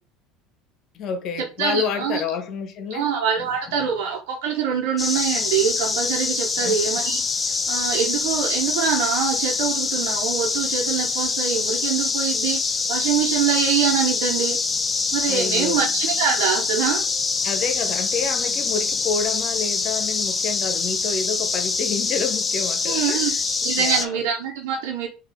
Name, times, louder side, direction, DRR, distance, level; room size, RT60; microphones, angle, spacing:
voice 1, 0.9-3.1 3.4-3.5 6.6-6.8 15.3-15.8 17.4-23.2 23.8-24.2, left 5 dB, 50° left, 1.2 m, -29 dB
voice 2, 1.6-2.2 2.9-14.6 15.1-17.0 22.8-25.1, right 7 dB, 65° right, 1.1 m, -24 dB
sound 1, 5.0-24.1, left 4 dB, 25° left, 0.6 m, -24 dB
4.8 x 2.7 x 3.8 m
hypercardioid pair, 70°, 0 cm